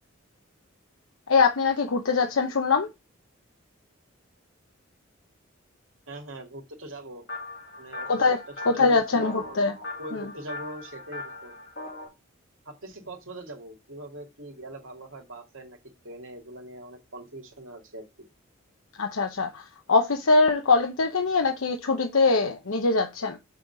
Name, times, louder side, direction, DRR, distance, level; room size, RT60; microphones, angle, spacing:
voice 1, 1.3-2.9 8.1-8.4 8.6-9.7 10.1-10.3 19.0-23.4, left 4 dB, 80° left, 0.8 m, -23 dB
voice 2, 6.1-7.2 7.8-8.4 8.7-11.5 12.7-15.8 16.0-18.0, right 1 dB, 70° right, 2.3 m, -42 dB
sound 1, 7.3-12.1, left 2 dB, 50° left, 2.8 m, -40 dB
6.8 x 3.9 x 5.9 m
head